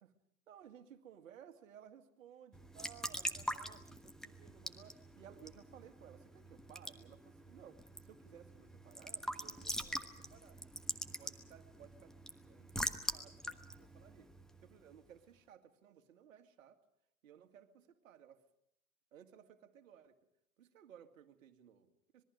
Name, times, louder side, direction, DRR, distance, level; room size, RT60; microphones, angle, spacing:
voice 1, 0.5-10.6 11.2-14.3 14.6-16.8 17.2-18.4 19.1-20.2 20.6-22.2, right 9 dB, 65° right, 8 dB, 2.1 m, -59 dB
Raindrop / Drip / Trickle dribble, 2.5-15.0, equal, ahead, 1.3 m, -44 dB
26.0 x 21.0 x 6.5 m, 0.75 s
figure-of-eight pair, 100°, 43 cm